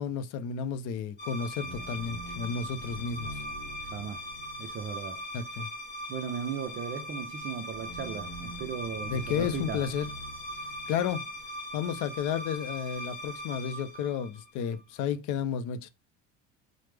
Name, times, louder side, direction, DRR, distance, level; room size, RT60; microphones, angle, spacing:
voice 1, 0.0-3.3 5.3-5.7 9.1-10.1 10.9-11.3 11.7-15.9, left 7 dB, 60° left, 0.5 m, -32 dB
sound 1, 1.2-14.8, equal, 30° left, 0.9 m, -39 dB
voice 2, 3.8-4.3 4.6-5.6 6.1-9.9, right 7 dB, 35° right, 0.4 m, -37 dB
3.1 x 2.0 x 3.2 m
supercardioid pair, 110°, 35 cm